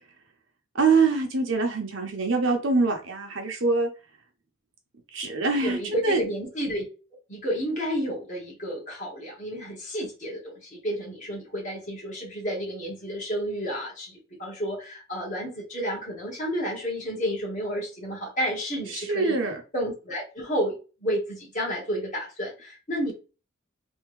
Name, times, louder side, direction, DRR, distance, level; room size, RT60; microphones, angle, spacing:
voice 1, 0.7-3.9 5.1-6.2 18.9-19.6, right 4 dB, 60° right, 3 dB, 0.9 m, -24 dB
voice 2, 5.5-6.8 7.3-14.1 14.4-19.4 19.7-20.7 21.0-23.1, equal, 35° left, -2 dB, 1.5 m, -31 dB
3.5 x 2.9 x 3.2 m, 0.33 s
head